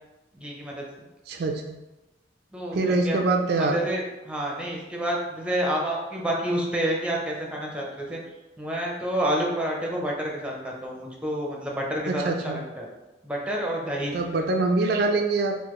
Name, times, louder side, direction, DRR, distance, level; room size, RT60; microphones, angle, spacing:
voice 1, 0.3-0.8 2.5-3.2 3.6-8.2 8.6-12.9 13.2-14.1, right 1 dB, 5° right, -2 dB, 0.6 m, -29 dB
voice 2, 1.3-1.8 2.7-3.8 12.1-12.6 14.1-15.5, right 3 dB, 60° right, 3 dB, 0.4 m, -24 dB
3.9 x 2.7 x 3.0 m, 1.0 s
head